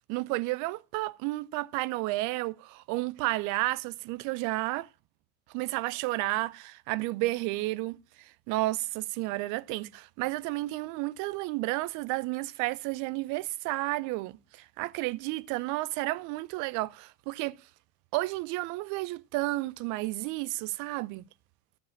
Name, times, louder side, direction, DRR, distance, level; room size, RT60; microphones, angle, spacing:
voice 1, 0.1-4.9 5.5-17.6 18.1-21.2, right 19 dB, 60° right, 0.5 m, -32 dB
13.5 x 4.9 x 7.1 m
hypercardioid pair, 65°, 34 cm